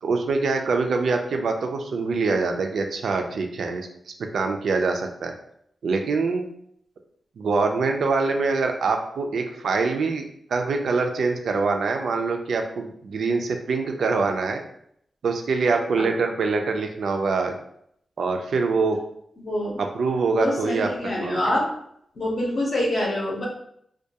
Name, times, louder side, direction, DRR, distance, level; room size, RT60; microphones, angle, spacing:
voice 1, 0.0-3.9 4.3-5.3 5.8-6.5 7.4-14.6 15.2-17.5 18.2-19.0 19.8-21.5, right 4 dB, 75° right, 4 dB, 0.3 m, -24 dB
voice 2, 19.4-19.8 20.3-21.7 22.2-23.5, left 1 dB, 50° left, -3 dB, 0.6 m, -25 dB
2.2 x 2.2 x 2.7 m, 0.70 s
wide cardioid pair, 140°, 0 cm